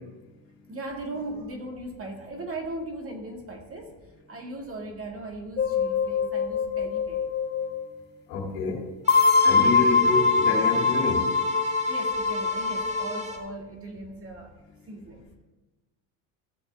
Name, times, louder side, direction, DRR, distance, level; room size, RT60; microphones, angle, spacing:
voice 1, 0.7-4.0 4.3-7.3 9.4-10.0 11.9-14.6 14.9-15.2, right 2 dB, 30° right, 2 dB, 1.9 m, -38 dB
sound 1, 5.6-7.9 9.1-13.3, left 4 dB, 25° left, 0.4 m, -23 dB
voice 2, 8.3-8.8 9.4-11.2, left 4 dB, 80° left, 0 dB, 2.7 m, -28 dB
sound 2, 9.0-13.4, left 1 dB, 15° right, 1.6 m, -35 dB
15.5 x 6.7 x 3.4 m, 1.2 s
supercardioid pair, 110°, 43 cm